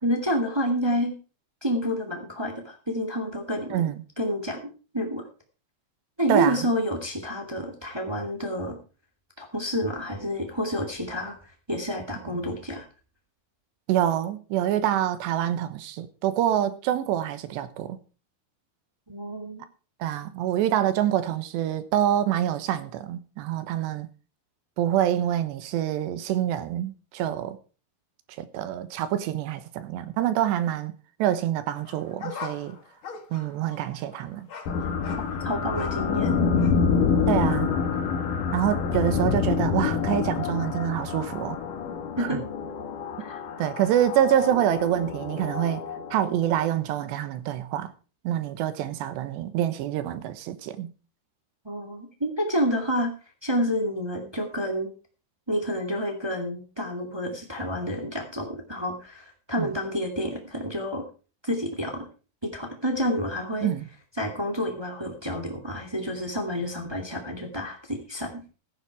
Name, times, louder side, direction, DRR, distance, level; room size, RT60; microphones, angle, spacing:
voice 1, 0.0-1.1 1.6-3.8 4.2-4.6 4.9-5.2 6.2-8.8 9.4-11.3 11.7-12.8 19.1-19.6 35.4-36.3 42.2-42.4 43.2-43.4 51.6-53.1 53.4-54.9 55.5-61.0 61.4-62.1 62.4-63.7 64.2-68.4, equal, 10° right, 1.2 m, -29 dB
voice 2, 3.7-4.0 6.3-6.7 13.9-18.0 20.0-24.1 24.8-27.6 28.4-30.9 31.2-32.8 33.3-34.5 37.3-37.7 38.5-41.6 42.2-42.4 43.6-45.8 46.1-47.9 48.2-50.9 59.6-59.7 63.6-63.9, right 11 dB, 85° right, 3.3 m, -26 dB
sound 1, 31.7-36.2 36.6-36.8, left 5 dB, 45° left, 1.7 m, -42 dB
sound 2, 34.7-46.6, left 6 dB, 65° left, 2.3 m, -27 dB
15.0 x 9.7 x 4.7 m
omnidirectional pair, 4.9 m